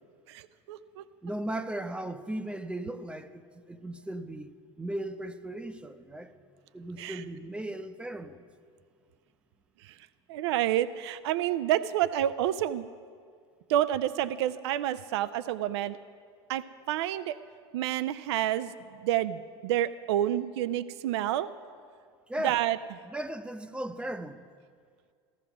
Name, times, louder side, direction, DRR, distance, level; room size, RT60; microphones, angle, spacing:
voice 1, 0.3-1.0 7.0-7.2 9.8-9.9 10.3-12.9 13.7-16.0 16.5-17.4 17.7-18.7 19.0-21.5 22.4-22.8, right 12 dB, 70° right, 0.5 m, -29 dB
voice 2, 1.2-4.5 4.8-6.4 6.7-8.4 22.3-22.6 23.1-24.4, right 1 dB, 5° right, 0.7 m, -37 dB
14.5 x 14.0 x 6.0 m
hypercardioid pair, 100°, 14 cm